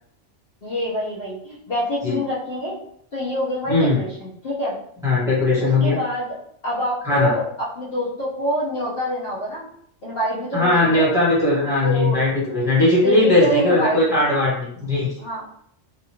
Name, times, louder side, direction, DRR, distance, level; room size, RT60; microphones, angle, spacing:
voice 1, 0.6-2.8 3.1-4.7 5.6-6.3 6.6-9.7 10.0-11.1 11.8-12.2 12.9-14.0 15.2-15.5, equal, 55° left, -7 dB, 1.0 m, -26 dB
voice 2, 3.7-4.0 5.0-5.9 7.0-7.3 10.5-15.1, left 2 dB, 5° right, -8 dB, 1.1 m, -18 dB
3.0 x 2.5 x 2.8 m, 0.68 s
omnidirectional pair, 1.2 m